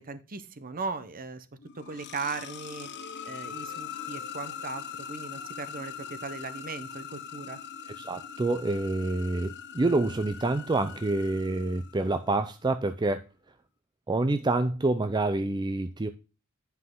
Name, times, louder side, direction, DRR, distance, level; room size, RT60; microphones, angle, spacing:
voice 1, 0.0-1.5 1.7-2.9 3.2-7.6, right 4 dB, 40° right, 0.9 m, -38 dB
sound 1, 1.6-12.4, left 7 dB, 50° left, 0.8 m, -42 dB
voice 2, 8.0-13.2 14.1-16.1, right 2 dB, 20° right, 0.5 m, -27 dB
10.0 x 5.7 x 3.7 m
head